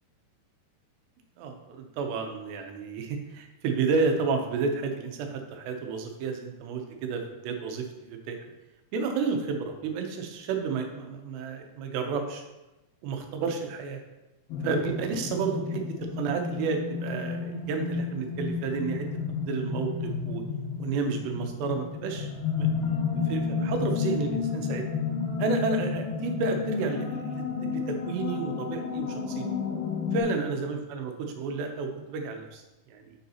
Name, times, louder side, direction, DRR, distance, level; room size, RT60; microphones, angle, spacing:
voice 1, 1.4-8.4 8.9-12.4 13.0-14.0 14.6-19.1 19.5-20.4 20.8-22.3 22.6-22.7 23.3-24.8 25.4-27.4 27.7-29.5 30.1-32.6 32.9-33.2, right 4 dB, 85° right, 4 dB, 3.0 m, -31 dB
sound 1, 14.5-30.2, left 5 dB, 75° left, 2.2 m, -31 dB
7.2 x 6.6 x 2.8 m, 1.0 s
omnidirectional pair, 4.8 m